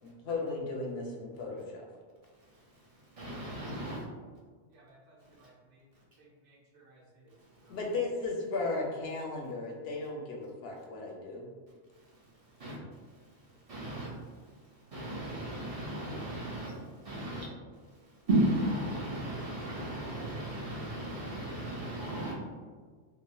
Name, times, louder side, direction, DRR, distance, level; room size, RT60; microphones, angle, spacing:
voice 1, 0.0-1.8 7.7-11.5, left 3 dB, 70° left, -1 dB, 0.8 m, -35 dB
voice 2, 2.5-4.0 7.4-7.8 11.9-12.8 13.1-17.5 18.3-22.3, right 1 dB, 45° right, -5 dB, 0.5 m, -35 dB
voice 3, 4.7-5.9 6.2-7.8 13.5-13.6, right 2 dB, 90° right, -3 dB, 1.0 m, -61 dB
3.2 x 2.3 x 2.2 m, 1.5 s
omnidirectional pair, 1.2 m